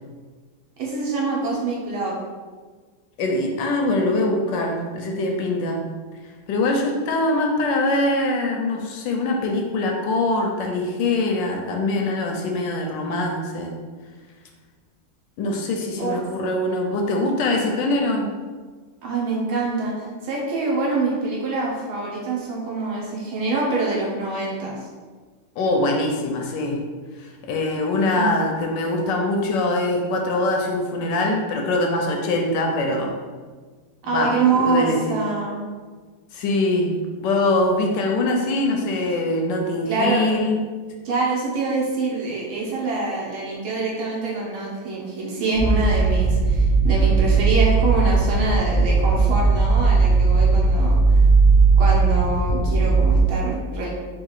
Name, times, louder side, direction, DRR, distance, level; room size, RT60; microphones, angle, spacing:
voice 1, 0.8-2.2 16.0-16.2 19.0-24.7 28.1-28.3 34.0-35.6 39.9-40.3 41.1-50.9 51.8-53.9, right 3 dB, 75° right, -3 dB, 1.8 m, -25 dB
voice 2, 3.2-5.8 6.5-13.8 15.4-18.3 25.6-26.8 27.2-33.1 34.1-35.2 36.3-36.9 37.2-40.6 50.4-50.5 53.0-53.1, left 2 dB, 75° left, 2 dB, 1.1 m, -23 dB
sound 1, 45.5-53.2, right 4 dB, 45° right, 1.2 m, -17 dB
4.7 x 2.4 x 4.7 m, 1.5 s
omnidirectional pair, 2.3 m